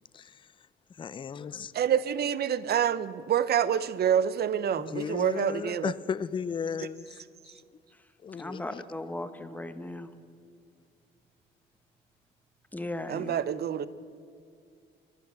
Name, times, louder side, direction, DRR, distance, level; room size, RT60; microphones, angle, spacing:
voice 1, 0.1-0.5 1.0-1.7 4.9-7.5 8.2-8.8, left 6 dB, 25° left, 0.4 m, -35 dB
voice 2, 1.7-5.9 13.1-13.9, right 9 dB, 55° right, 0.6 m, -27 dB
voice 3, 8.3-10.1 12.7-13.4, left 1 dB, 10° left, 0.8 m, -37 dB
11.5 x 11.0 x 6.9 m
cardioid pair, 90°, 20 cm